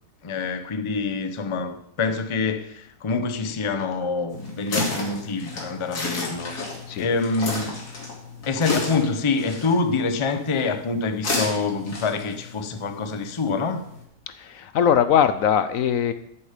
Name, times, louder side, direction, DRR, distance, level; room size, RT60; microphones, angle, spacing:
voice 1, 0.2-6.6 7.0-7.8 8.4-13.8, left 4 dB, 30° left, 0.6 m, -26 dB
sound 1, 4.3-14.0, left 3 dB, 90° left, 3.0 m, -33 dB
voice 2, 14.3-16.1, left 8 dB, 70° left, 1.0 m, -21 dB
13.0 x 7.2 x 5.1 m
omnidirectional pair, 1.6 m